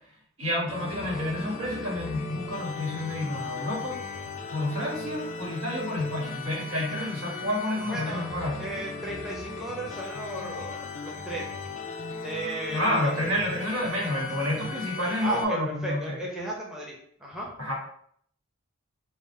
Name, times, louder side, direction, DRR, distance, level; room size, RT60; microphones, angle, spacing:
voice 1, 0.4-4.0 4.5-8.7 12.7-16.2 17.6-17.8, left 1 dB, 70° right, -3 dB, 1.4 m, -29 dB
sound 1, 0.7-15.4, left 4 dB, 35° left, 0.4 m, -37 dB
voice 2, 7.9-8.3 8.5-11.5 12.2-13.1 15.2-17.5, right 2 dB, 5° right, -4 dB, 0.7 m, -35 dB
3.7 x 2.0 x 4.1 m, 0.63 s
head